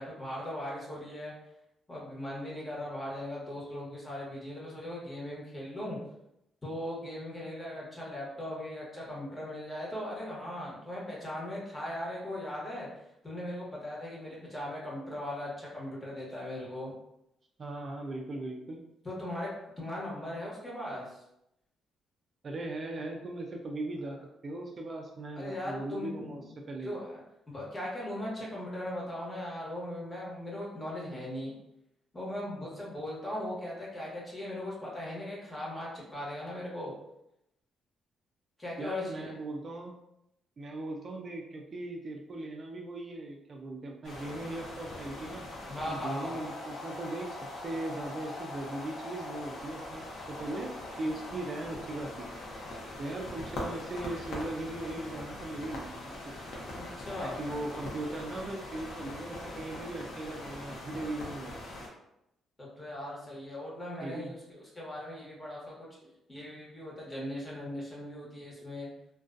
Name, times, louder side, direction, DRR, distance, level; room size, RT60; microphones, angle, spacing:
voice 1, 0.0-1.3 1.9-6.0 6.6-12.9 13.2-16.9 19.0-19.5 19.8-21.2 25.3-26.6 26.8-27.2 27.5-31.5 32.1-36.9 38.6-39.3 45.7-46.4 56.8-57.4 62.6-65.7 66.3-68.9, left 1 dB, 20° left, -5 dB, 1.1 m, -39 dB
voice 2, 17.6-18.8 22.4-26.9 38.8-40.0 40.6-45.5 45.9-52.3 53.0-56.3 57.2-61.7 64.0-64.3, right 2 dB, 45° right, 1 dB, 0.3 m, -39 dB
sound 1, 44.0-61.9, left 1 dB, 75° left, 0.7 m, -42 dB
2.4 x 2.2 x 2.5 m, 0.83 s
cardioid pair, 90°, 0 cm